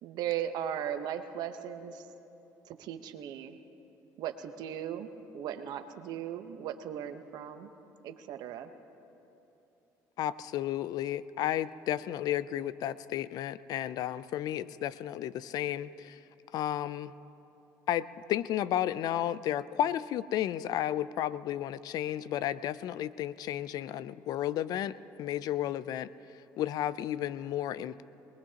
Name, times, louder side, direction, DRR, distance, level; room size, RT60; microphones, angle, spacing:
voice 1, 0.0-2.0 2.6-3.6 4.2-5.1 5.3-7.7 8.0-8.7, right 10 dB, 70° right, 8 dB, 1.0 m, -37 dB
voice 2, 10.2-16.2 16.5-17.1 17.9-26.1 26.6-28.0, left 11 dB, 60° left, 17 dB, 0.4 m, -33 dB
24.0 x 20.5 x 2.9 m, 3.0 s
cardioid pair, 100°, 7 cm